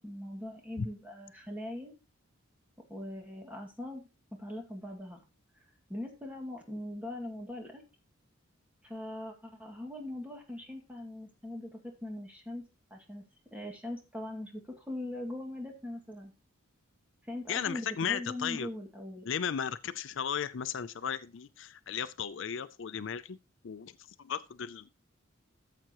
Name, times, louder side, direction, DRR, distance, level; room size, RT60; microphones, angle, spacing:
voice 1, 0.0-1.9 2.9-5.2 5.9-7.8 8.8-13.2 13.5-16.3 17.3-19.3, left 1 dB, 5° right, 2.1 m, -41 dB
voice 2, 17.5-18.7 19.3-23.4 23.6-24.9, left 7 dB, 60° left, 0.4 m, -35 dB
14.0 x 7.5 x 3.0 m
head